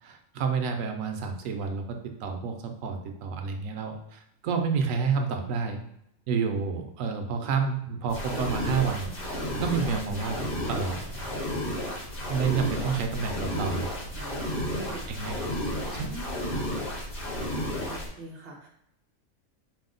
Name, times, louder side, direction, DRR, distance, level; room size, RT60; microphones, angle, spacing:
voice 1, 0.0-5.8 6.3-11.3 12.3-13.9 15.1-16.1, right 5 dB, 85° right, 5 dB, 1.0 m, -30 dB
sound 1, 8.1-18.1, left 1 dB, 45° left, 1.2 m, -32 dB
voice 2, 14.2-15.1 15.9-16.7 17.8-18.7, equal, 60° right, 0 dB, 1.2 m, -43 dB
4.8 x 2.1 x 3.7 m, 0.77 s
omnidirectional pair, 1.4 m